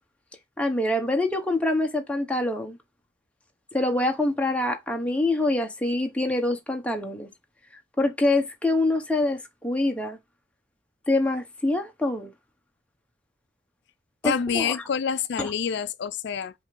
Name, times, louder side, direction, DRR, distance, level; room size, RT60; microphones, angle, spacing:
voice 1, 0.6-2.8 3.7-7.3 8.0-10.2 11.1-12.3 14.2-14.8 15.4-15.5, left 2 dB, 5° left, 1.1 m, -25 dB
voice 2, 14.2-16.5, left 7 dB, 65° left, 0.4 m, -27 dB
5.4 x 3.4 x 5.1 m
head